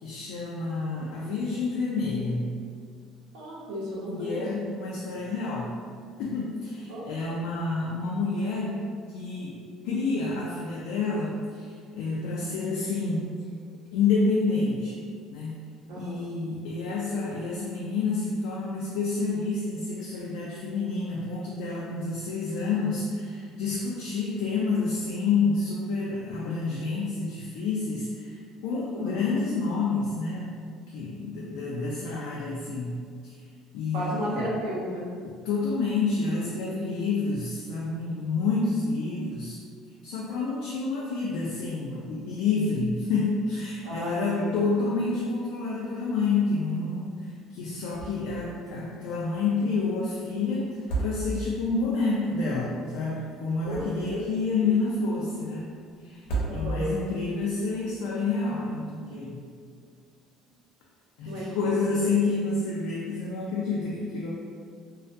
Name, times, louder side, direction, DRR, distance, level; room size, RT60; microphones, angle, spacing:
voice 1, 0.0-2.5 4.1-5.7 6.2-8.8 9.1-9.5 9.8-13.3 13.9-15.0 15.3-15.6 16.0-30.6 30.9-33.0 33.2-33.4 33.7-34.5 35.4-39.6 40.0-55.7 56.0-56.2 56.5-59.4 61.2-64.3, left 3 dB, 85° left, -4 dB, 0.3 m, -29 dB
voice 2, 3.3-4.5 6.9-7.1 15.9-16.2 29.0-29.3 33.9-35.0 43.8-44.7 53.6-54.2 56.5-56.9 61.2-62.0, equal, 80° right, -5 dB, 0.6 m, -33 dB
sound 1, 47.9-48.4 48.7-48.8 50.7-51.7 53.4-54.3 56.1-57.1, right 2 dB, 60° left, 0.7 m, -32 dB
2.3 x 2.2 x 2.5 m, 2.1 s
cardioid pair, 170°, 0 cm